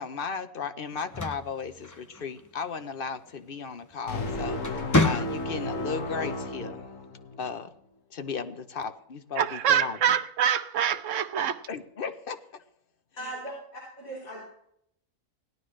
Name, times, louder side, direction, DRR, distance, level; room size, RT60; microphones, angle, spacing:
voice 1, 0.0-6.8 7.4-7.7 8.1-10.0 11.7-12.6, left 5 dB, 45° left, 0.9 m, -35 dB
sound 1, 0.9-2.5 3.9-4.2 4.6-5.8, left 2 dB, 20° left, 0.6 m, -28 dB
sound 2, 4.1-7.5, left 2 dB, 70° left, 1.6 m, -33 dB
voice 2, 9.3-11.6, right 9 dB, 70° right, 1.0 m, -25 dB
voice 3, 13.2-14.4, right 1 dB, 90° left, 4.5 m, -39 dB
17.5 x 11.5 x 3.2 m
omnidirectional pair, 1.4 m